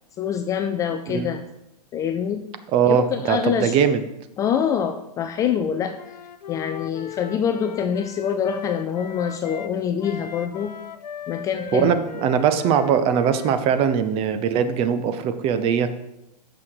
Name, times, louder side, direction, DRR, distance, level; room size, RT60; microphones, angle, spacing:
voice 1, 0.2-1.4 1.9-2.5 2.9-3.8 4.4-6.0 6.5-10.7 11.3-11.9, left 8 dB, 15° left, 7 dB, 0.3 m, -25 dB
voice 2, 2.7-4.0 11.7-16.1, right 8 dB, 25° right, 10 dB, 0.6 m, -21 dB
Wind instrument woodwind instrument, 5.9-9.7 10.0-14.1, left 8 dB, 80° left, 0.7 m, -38 dB
8.4 x 6.2 x 4.8 m, 0.87 s
hypercardioid pair, 125°, 21 cm